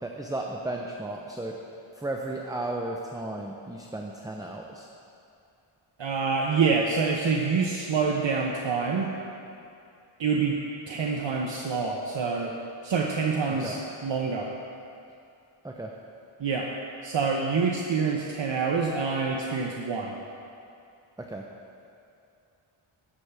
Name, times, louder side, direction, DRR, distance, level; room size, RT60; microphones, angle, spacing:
voice 1, 0.0-1.6 1.9-4.9 13.5-13.8 15.6-15.9 21.2-21.5, right 2 dB, 10° right, 0 dB, 0.6 m, -34 dB
voice 2, 6.0-9.1 10.2-10.6 10.9-12.5 12.8-14.5 16.4-16.7 17.0-20.2, right 5 dB, 60° right, 0 dB, 0.8 m, -26 dB
16.5 x 7.1 x 3.4 m, 2.6 s
wide cardioid pair, 90°, 50 cm